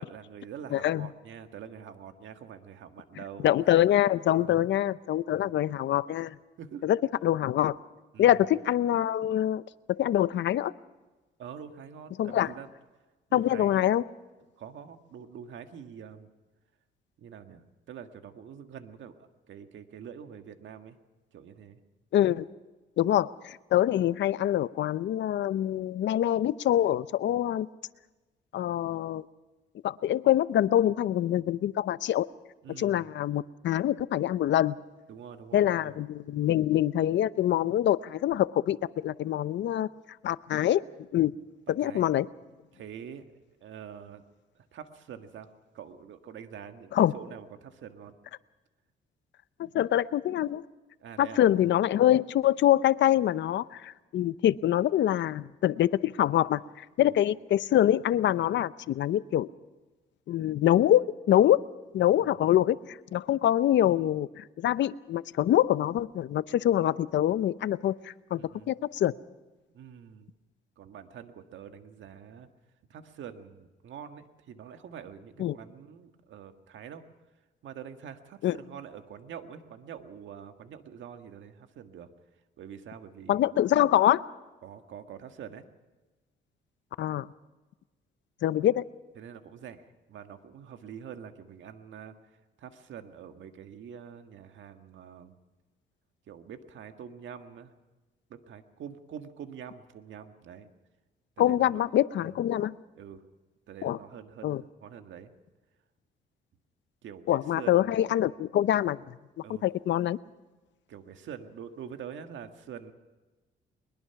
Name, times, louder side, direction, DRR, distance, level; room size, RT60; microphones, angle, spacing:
voice 1, 0.0-3.5 4.4-4.6 5.3-5.5 6.6-6.9 8.1-8.4 11.4-12.7 13.3-13.9 14.6-16.3 17.2-21.0 21.3-21.8 32.6-33.1 35.1-36.0 41.8-42.1 42.7-44.2 44.7-48.2 51.0-51.4 57.0-57.2 62.2-62.3 68.3-68.7 69.7-70.3 70.8-72.5 72.9-77.0 77.6-82.1 82.6-83.4 84.6-85.6 89.2-95.4 96.3-97.7 98.3-100.7 101.4-101.8 102.2-102.3 103.0-103.2 103.7-105.3 107.0-108.0 109.4-109.6 110.9-112.9, right 8 dB, 70° right, 7 dB, 1.7 m, -45 dB
voice 2, 0.7-1.1 3.4-6.4 6.8-7.7 8.2-9.6 10.0-10.7 12.2-12.5 13.3-14.0 22.1-22.5 23.0-27.7 28.5-29.2 29.8-32.3 32.8-34.7 35.5-38.8 39.0-39.9 40.2-40.8 41.1-41.3 41.7-42.3 46.9-47.1 49.6-50.6 51.2-56.6 57.0-59.5 60.3-61.6 61.9-68.4 68.7-69.1 75.4-75.5 78.4-78.6 83.3-84.2 87.0-87.3 88.4-88.8 101.4-102.7 103.8-104.0 104.4-104.6 107.3-109.0 109.6-110.2, left 12 dB, 65° left, 16 dB, 0.7 m, -25 dB
22.0 x 21.5 x 5.9 m, 1.2 s
cardioid pair, 90°, 20 cm